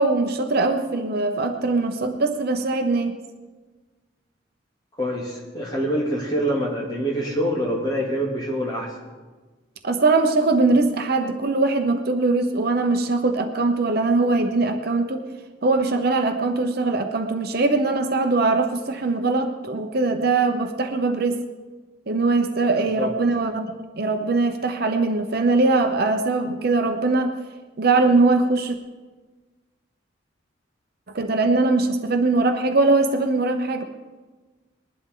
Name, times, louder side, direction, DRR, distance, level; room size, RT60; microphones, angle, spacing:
voice 1, 0.0-3.1 9.8-15.3 15.6-21.4 22.1-27.4 27.8-28.8 31.1-33.8, right 3 dB, 50° right, 6 dB, 0.9 m, -21 dB
voice 2, 5.0-9.0 23.0-23.1, equal, 20° left, -3 dB, 2.8 m, -25 dB
20.5 x 11.5 x 3.9 m, 1.3 s
head